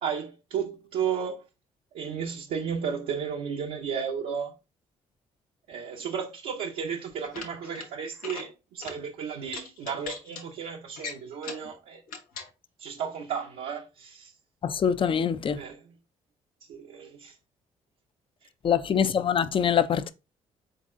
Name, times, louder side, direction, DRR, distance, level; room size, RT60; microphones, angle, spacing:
voice 1, 0.0-1.4 1.9-4.5 5.7-12.0 12.8-14.3 15.6-15.9 16.7-17.4, right 7 dB, 75° right, 0.7 m, -33 dB
sound 1, 7.1-7.9 8.2-8.5 8.8-9.0 9.5-10.4 11.0-11.7 12.1-12.5, left 5 dB, 80° left, 0.9 m, -39 dB
voice 2, 14.6-15.6 18.6-20.1, left 8 dB, 40° left, 0.4 m, -24 dB
4.1 x 3.8 x 2.5 m
supercardioid pair, 60°, 14 cm